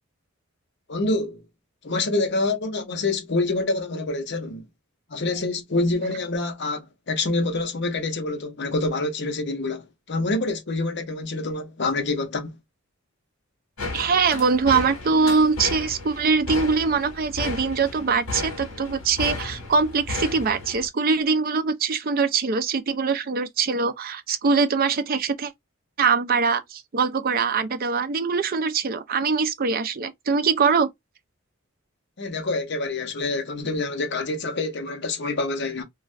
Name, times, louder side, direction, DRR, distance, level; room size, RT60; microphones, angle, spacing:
voice 1, 0.9-1.4 1.8-4.6 5.1-12.5 32.2-35.8, left 2 dB, 55° left, 0.8 m, -26 dB
sound 1, 13.8-20.9, left 2 dB, 90° left, 1.1 m, -33 dB
voice 2, 13.9-25.5 26.0-30.9, right 5 dB, 45° right, 0.5 m, -23 dB
2.5 x 2.4 x 3.2 m
head